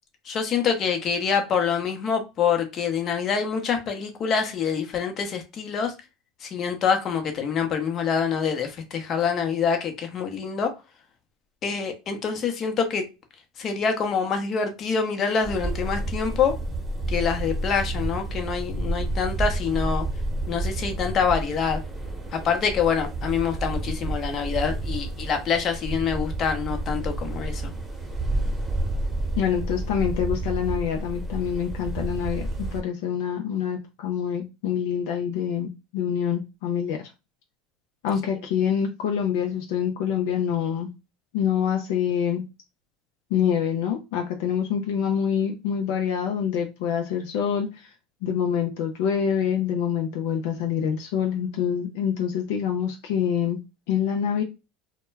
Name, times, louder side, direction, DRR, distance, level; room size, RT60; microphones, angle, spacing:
voice 1, 0.3-5.9 6.4-10.7 11.6-13.1 13.6-16.5 17.1-20.0 20.5-21.8 22.3-27.7, left 6 dB, 45° left, 0.7 m, -26 dB
sound 1, 15.4-32.8, right 2 dB, 10° right, 1.0 m, -30 dB
voice 2, 29.4-32.4 32.7-37.0 38.0-40.9 41.3-42.4 43.3-47.9 48.2-53.6 53.9-54.4, left 8 dB, 70° left, 0.4 m, -26 dB
2.2 x 2.1 x 3.2 m
hypercardioid pair, 95°, 0 cm